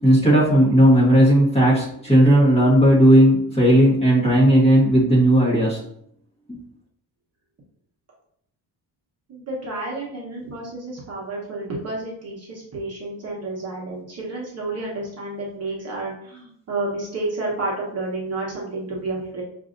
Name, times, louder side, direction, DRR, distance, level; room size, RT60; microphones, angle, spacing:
voice 1, 0.0-5.8 6.5-6.6, equal, 15° left, -6 dB, 1.3 m, -15 dB
voice 2, 9.3-19.4, right 2 dB, 40° right, -3 dB, 1.0 m, -30 dB
6.1 x 2.6 x 2.5 m, 0.70 s
cardioid pair, 170°, 40 cm